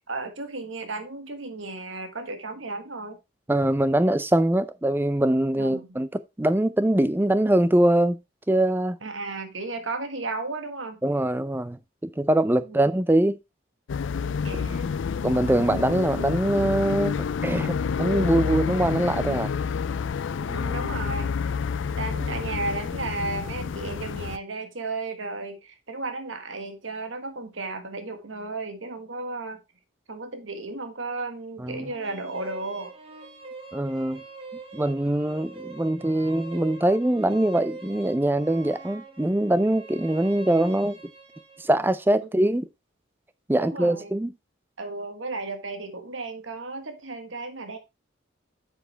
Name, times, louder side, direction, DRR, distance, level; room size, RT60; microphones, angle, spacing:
voice 1, 0.1-3.2 5.6-5.8 9.0-11.0 12.7-12.8 14.4-15.0 20.5-21.3 22.0-29.6 30.1-32.9 43.6-44.1 44.8-47.8, right 3 dB, 85° right, 1.6 m, -34 dB
voice 2, 3.5-8.2 8.5-9.0 11.0-13.4 15.2-19.5 31.6-31.9 33.7-34.2 34.7-41.0 41.6-42.6 43.5-44.3, right 1 dB, 10° right, 0.5 m, -23 dB
sound 1, 13.9-24.4, left 6 dB, 75° left, 0.4 m, -29 dB
sound 2, 31.7-41.7, right 3 dB, 30° right, 1.5 m, -44 dB
8.0 x 7.2 x 3.4 m
head